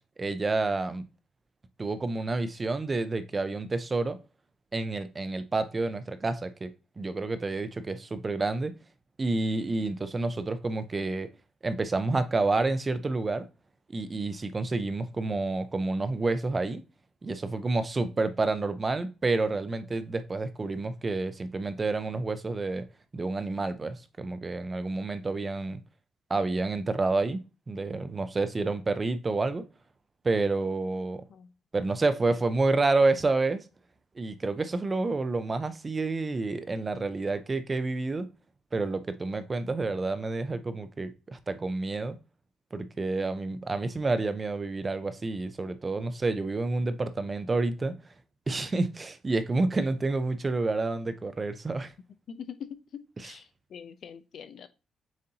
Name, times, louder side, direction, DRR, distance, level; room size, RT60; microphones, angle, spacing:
voice 1, 0.2-1.0 1.8-4.2 4.7-6.7 7.0-8.7 9.2-11.3 11.6-13.5 13.9-16.8 17.2-22.8 23.1-25.8 26.3-29.7 30.2-31.2 31.7-33.6 34.2-38.3 38.7-42.2 42.7-47.9 48.5-51.9, right 3 dB, 30° right, 0.5 m, -29 dB
voice 2, 52.3-54.7, left 7 dB, 65° left, 0.5 m, -43 dB
7.2 x 2.6 x 2.8 m
cardioid pair, 90°, 0 cm